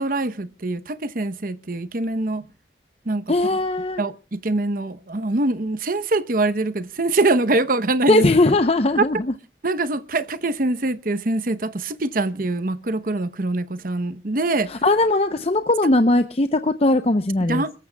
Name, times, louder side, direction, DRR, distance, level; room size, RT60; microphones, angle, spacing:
voice 1, 0.0-2.4 3.1-3.2 4.0-8.3 9.6-14.7 17.5-17.7, right 2 dB, 50° right, 0.9 m, -24 dB
voice 2, 3.3-4.0 8.1-9.3 14.7-17.6, left 2 dB, 35° left, 0.7 m, -19 dB
28.5 x 14.5 x 2.3 m
head